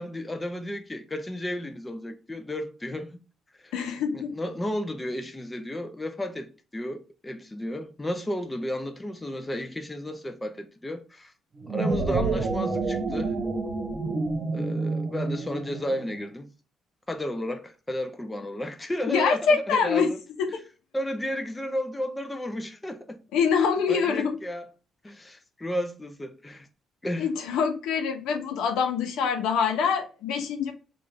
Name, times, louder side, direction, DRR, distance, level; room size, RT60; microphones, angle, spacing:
voice 1, 0.0-3.2 3.6-3.7 4.1-11.3 11.7-13.3 14.5-16.5 17.1-20.2 20.9-23.2 23.9-24.7 25.0-26.7 27.0-27.3, left 1 dB, 15° left, 0.6 m, -33 dB
voice 2, 3.7-4.4 19.1-20.1 20.4-20.6 23.3-24.4 27.2-30.7, left 6 dB, 90° left, 0.8 m, -25 dB
sound 1, 11.5-16.1, right 3 dB, 50° right, 1.0 m, -28 dB
3.6 x 2.6 x 3.2 m
cardioid pair, 90°, 0 cm